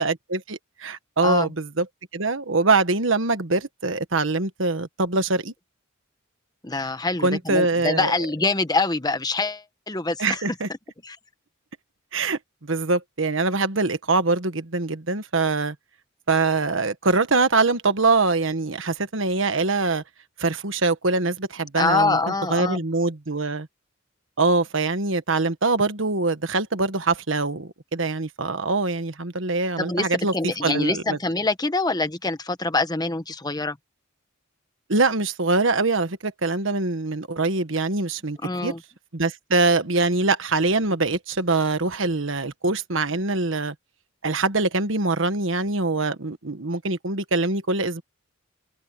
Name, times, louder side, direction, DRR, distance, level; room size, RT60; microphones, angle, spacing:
voice 1, 0.0-1.9 2.1-5.5 6.7-6.8 7.2-8.1 10.2-10.7 12.1-15.7 16.3-20.0 20.4-22.2 22.5-23.7 24.4-30.3 30.6-31.2 34.9-38.7 39.1-43.7 44.2-48.0, right 3 dB, 70° right, 1.5 m, -23 dB
voice 2, 6.6-10.4 11.0-11.2 21.8-22.8 29.8-33.8 38.4-38.8, left 3 dB, 20° left, 1.2 m, -25 dB
head